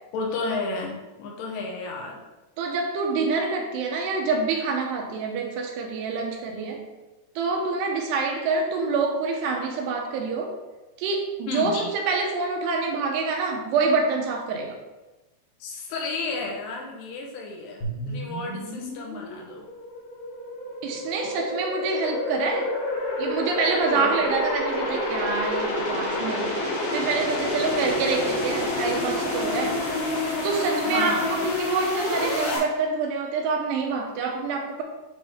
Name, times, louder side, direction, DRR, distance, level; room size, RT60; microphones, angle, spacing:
voice 1, 0.1-2.2 11.5-11.9 15.6-19.7 23.9-24.3 30.8-31.5, left 3 dB, 85° left, 0 dB, 3.3 m, -32 dB
voice 2, 2.6-6.9 7.4-10.5 11.0-14.8 20.8-22.7 23.2-26.6 26.9-29.8 30.4-34.8, right 4 dB, 85° right, 1 dB, 3.1 m, -26 dB
sound 1, 17.8-32.6, left 1 dB, 55° left, 2.8 m, -28 dB
10.0 x 3.4 x 3.6 m, 1.1 s
omnidirectional pair, 4.8 m